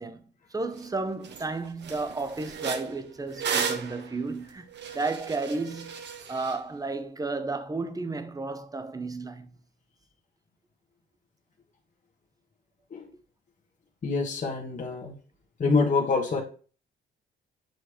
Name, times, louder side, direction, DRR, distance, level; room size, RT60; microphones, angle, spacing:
voice 1, 0.0-4.7 4.9-6.0 6.3-9.5, right 3 dB, 20° right, 0.8 m, -33 dB
sound 1, 0.8-0.9 1.2-1.5 1.8-6.6, right 6 dB, 60° right, 1.0 m, -34 dB
voice 2, 14.0-15.2 15.6-16.4, left 4 dB, 40° left, 1.5 m, -26 dB
7.9 x 3.2 x 5.0 m
cardioid pair, 90°, 20 cm